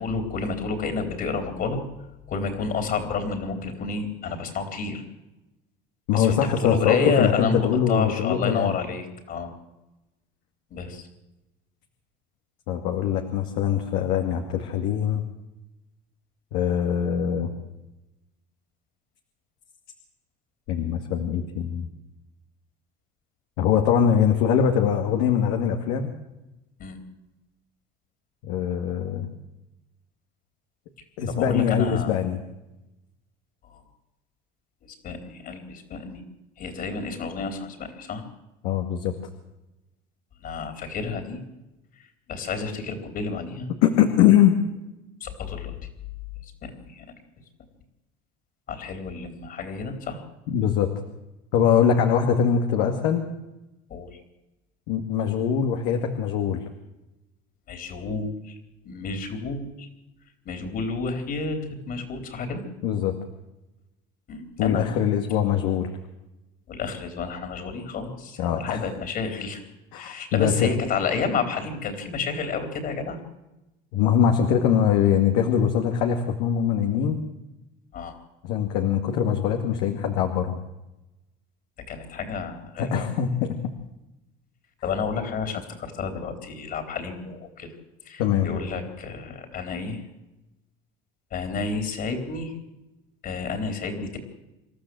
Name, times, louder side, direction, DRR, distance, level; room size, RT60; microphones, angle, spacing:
voice 1, 0.0-1.8 2.3-5.0 6.1-9.5 10.7-11.1 26.8-27.0 31.3-32.1 33.6-33.8 35.0-36.2 36.6-38.2 40.4-41.4 42.3-43.7 45.2-45.7 46.6-47.0 48.7-50.2 53.9-54.2 57.7-58.5 58.8-59.9 60.5-61.6 61.9-62.6 64.3-65.0 66.7-69.6 70.0-73.2 77.9-78.2 81.9-83.1 84.8-87.7 88.1-90.0 91.3-92.5 93.2-94.2, left 5 dB, 50° left, 5 dB, 3.9 m, -30 dB
voice 2, 6.1-8.7 12.7-15.2 16.5-17.5 20.7-21.9 23.6-26.1 28.4-29.3 31.2-32.4 38.6-39.1 43.8-44.6 50.5-50.9 51.5-53.2 54.9-56.6 62.8-63.1 64.6-65.9 68.4-68.8 69.9-70.7 73.9-77.2 78.4-80.6 82.8-83.5 88.2-88.5, left 8 dB, 80° left, 4 dB, 2.2 m, -22 dB
27.5 x 13.0 x 7.9 m, 0.97 s
supercardioid pair, 110°, 20 cm